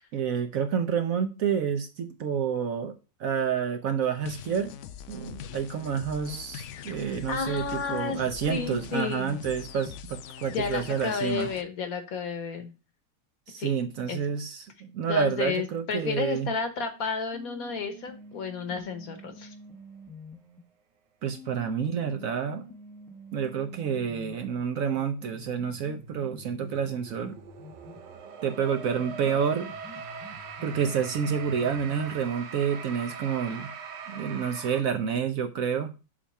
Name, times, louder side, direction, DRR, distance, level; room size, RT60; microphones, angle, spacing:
voice 1, 0.1-2.9 3.2-4.7 5.1-11.5 13.5-16.5 21.2-22.6 23.3-27.3 28.4-29.7 30.6-33.7 34.1-35.9, right 7 dB, 60° right, 7 dB, 1.0 m, -29 dB
sound 1, 4.2-11.6, left 9 dB, 90° left, 0.6 m, -43 dB
voice 2, 7.3-8.2 8.5-9.4 10.5-12.7 13.6-13.7 14.1-14.2 15.1-19.5, left 5 dB, 60° left, 8 dB, 1.4 m, -31 dB
sound 2, 17.3-20.6 21.3-28.3 28.8-32.3, left 1 dB, 5° left, 0.3 m, -48 dB
sound 3, 25.9-34.8, right 6 dB, 85° right, 1.6 m, -42 dB
7.2 x 3.5 x 5.5 m, 0.30 s
omnidirectional pair, 1.8 m